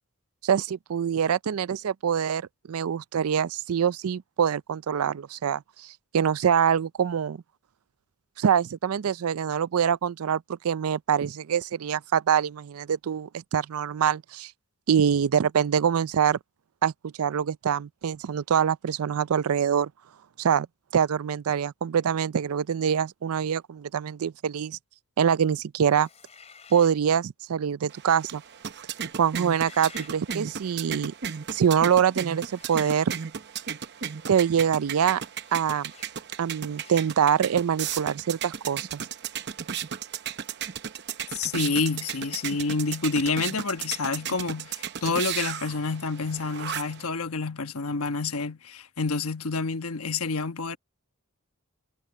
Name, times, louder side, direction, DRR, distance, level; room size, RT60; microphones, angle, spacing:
voice 1, 0.4-5.9 6.1-7.4 8.4-14.5 14.9-16.4 16.8-16.9 17.2-19.9 20.4-20.7 20.9-24.8 25.2-26.1 26.7-28.4 29.2-31.1 31.5-33.1 34.3-35.2 35.5-35.9 36.4-39.0, right 8 dB, 85° right, 0.4 m, -24 dB
sound 1, 25.9-27.0 29.3-30.2 32.5-33.1 35.4-35.6 35.9-36.1 36.7-37.1, left 6 dB, 30° left, 4.4 m, -50 dB
sound 2, 27.9-47.1, right 8 dB, 50° right, 0.8 m, -35 dB
voice 2, 41.3-50.8, left 4 dB, 80° left, 1.2 m, -28 dB
head